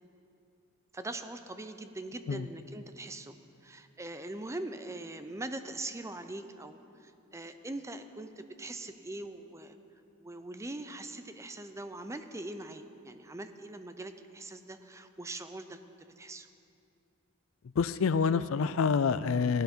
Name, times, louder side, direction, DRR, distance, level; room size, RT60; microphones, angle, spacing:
voice 1, 0.9-3.3 3.6-9.8 10.2-16.5, right 2 dB, 15° right, 9 dB, 0.5 m, -42 dB
voice 2, 17.8-19.6, left 5 dB, 70° left, 14 dB, 0.4 m, -27 dB
16.5 x 11.5 x 4.4 m, 2.7 s
head